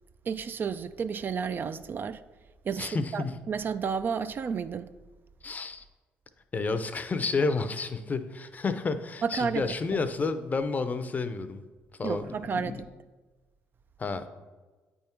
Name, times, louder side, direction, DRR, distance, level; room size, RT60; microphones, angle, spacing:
voice 1, 0.3-2.2 2.6-4.9 9.2-10.0 12.0-12.8, right 6 dB, 45° right, 0.4 m, -32 dB
voice 2, 2.8-3.4 5.4-5.8 6.5-11.6 12.0-12.8 14.0-14.3, left 4 dB, 35° left, 0.6 m, -30 dB
8.6 x 3.6 x 4.4 m
supercardioid pair, 70°, 5 cm